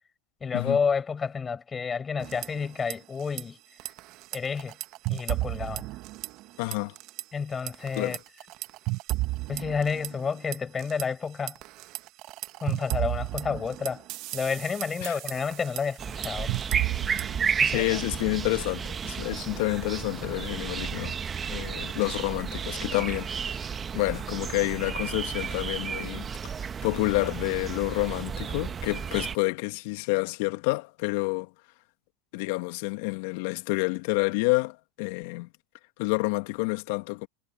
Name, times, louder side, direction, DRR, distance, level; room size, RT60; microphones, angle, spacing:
voice 1, 0.4-3.6 4.3-4.8 5.1-5.8 7.3-8.2 9.5-11.6 12.6-14.0 14.3-16.5 17.6-18.0, left 5 dB, 20° left, 7.6 m, -30 dB
sound 1, 2.2-2.9 3.2-3.4 3.8-6.5 6.7-7.2 7.7-11.0 11.5-17.4, right 20 dB, 50° right, 1.5 m, -33 dB
voice 2, 6.6-6.9 8.0-8.2 15.0-15.2 17.7-21.2 21.5-26.5 26.8-31.5 32.3-35.5 36.0-37.3, left 26 dB, 65° left, 2.2 m, -29 dB
sound 2, 16.0-29.4, right 7 dB, 25° right, 1.4 m, -32 dB
hypercardioid pair, 105°, 0 cm